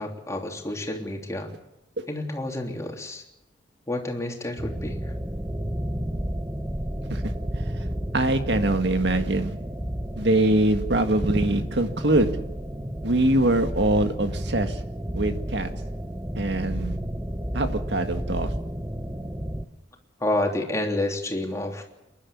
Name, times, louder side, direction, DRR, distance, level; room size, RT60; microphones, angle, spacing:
voice 1, 0.0-1.5 2.1-3.2 3.9-5.1 20.2-21.9, left 1 dB, 15° left, 2 dB, 3.2 m, -29 dB
sound 1, 4.6-19.6, equal, 15° right, 1.0 m, -31 dB
voice 2, 8.1-9.5 10.2-12.4 13.0-14.8 15.2-15.7 16.4-17.0 17.5-18.5, right 1 dB, 70° right, 7 dB, 1.9 m, -23 dB
28.5 x 11.5 x 8.5 m, 0.93 s
head